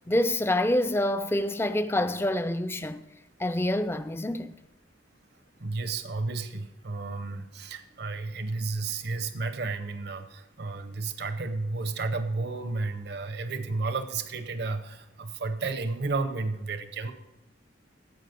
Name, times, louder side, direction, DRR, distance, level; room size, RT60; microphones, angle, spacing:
voice 1, 0.1-3.0 3.4-4.5, left 1 dB, 10° left, 0.5 m, -26 dB
voice 2, 5.6-17.1, right 3 dB, 55° right, 0.8 m, -32 dB
16.0 x 5.5 x 5.2 m
head